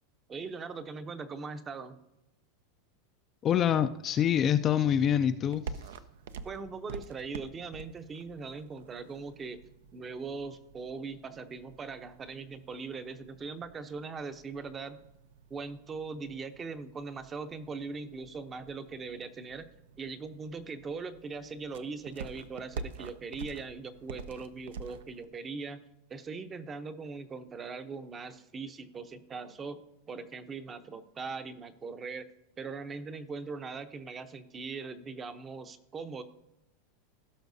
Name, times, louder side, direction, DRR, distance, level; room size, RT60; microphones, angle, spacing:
voice 1, 0.3-2.0 6.4-9.6 9.9-15.0 15.5-19.7 20.0-25.8 26.1-32.3 32.6-36.2, right 4 dB, 20° right, 0.6 m, -40 dB
voice 2, 3.4-5.7, left 9 dB, 30° left, 0.3 m, -25 dB
sound 1, 5.4-25.3, right 5 dB, 85° right, 0.6 m, -48 dB
16.5 x 6.1 x 2.7 m
supercardioid pair, 145°, 0 cm